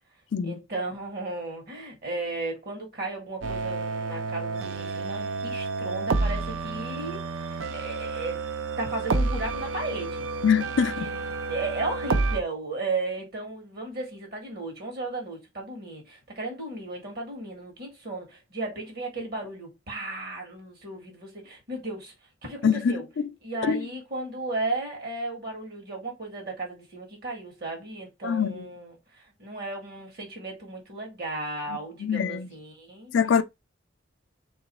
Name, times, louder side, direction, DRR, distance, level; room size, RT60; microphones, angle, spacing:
voice 1, 0.4-8.4 8.8-10.3 11.0-11.1 11.5-22.1 22.4-23.0 23.4-33.1, right 2 dB, 55° right, 1.7 m, -35 dB
sound 1, 3.4-12.4, right 3 dB, 75° right, 0.5 m, -30 dB
voice 2, 10.4-11.2 22.6-23.3 23.6-23.8 28.2-28.7 31.7-32.5 33.1-33.4, left 7 dB, 65° left, 0.4 m, -25 dB
3.1 x 3.0 x 4.1 m
head